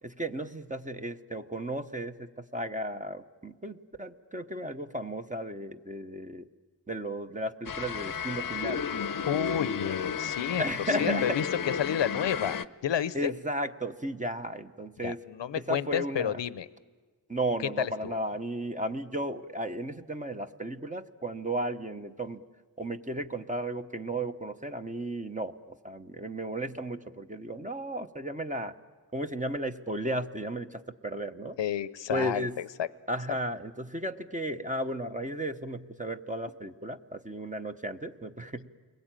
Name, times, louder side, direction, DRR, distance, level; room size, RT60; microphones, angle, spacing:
voice 1, 0.0-6.5 6.9-8.9 10.6-11.4 13.1-15.2 15.5-16.4 17.3-22.4 22.8-28.7 29.1-31.6 32.1-32.6 33.1-38.7, right 1 dB, 15° right, 7 dB, 0.9 m, -34 dB
sound 1, 7.7-12.7, left 7 dB, 50° left, 0.8 m, -32 dB
voice 2, 9.3-13.3 15.0-16.7 17.8-18.2 31.6-32.9, left 9 dB, 75° left, 16 dB, 0.8 m, -31 dB
29.5 x 21.5 x 9.0 m, 1.4 s
wide cardioid pair, 85°, 43 cm